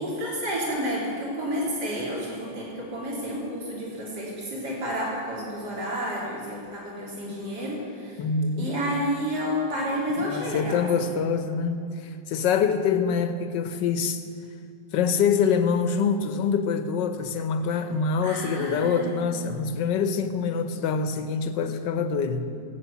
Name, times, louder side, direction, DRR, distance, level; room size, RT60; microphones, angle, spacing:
voice 1, 0.0-8.2 8.6-11.2 18.2-19.4, equal, 55° right, 3.7 m, -30 dB
voice 2, 8.2-8.7 10.2-14.2 14.9-22.5, left 6 dB, 70° left, 1.5 m, -25 dB
15.5 x 8.4 x 8.3 m
omnidirectional pair, 2.1 m